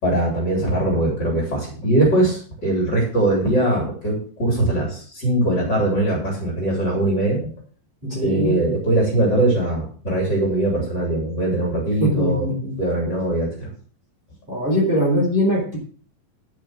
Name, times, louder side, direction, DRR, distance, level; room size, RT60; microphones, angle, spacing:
voice 1, 0.0-7.5 8.2-12.5 12.8-13.7, right 1 dB, 30° left, -2 dB, 4.2 m, -21 dB
voice 2, 8.0-8.6 12.0-12.7 14.5-15.8, equal, 15° right, -3 dB, 4.0 m, -21 dB
12.0 x 6.5 x 6.3 m, 0.43 s
omnidirectional pair, 3.8 m